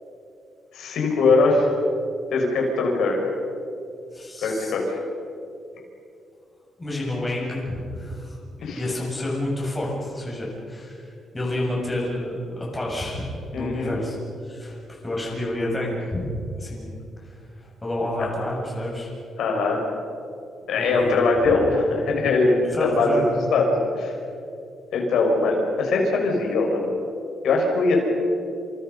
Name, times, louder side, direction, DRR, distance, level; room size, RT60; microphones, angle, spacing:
voice 1, 0.7-1.7 2.3-3.2 4.4-5.0 8.6-8.8 13.5-14.0 18.2-18.3 19.4-19.8 20.7-23.1 23.5-23.7 23.9-24.1 24.9-26.9 27.4-28.1, left 3 dB, 75° left, 0 dB, 6.1 m, -21 dB
voice 2, 4.1-4.7 6.8-11.1 11.3-14.2 14.4-14.8 15.0-16.3 16.6-19.1 20.8-21.3 22.6-23.4, left 1 dB, 15° left, -3 dB, 7.1 m, -29 dB
29.0 x 28.0 x 5.6 m, 2.5 s
cardioid pair, 145°, 0 cm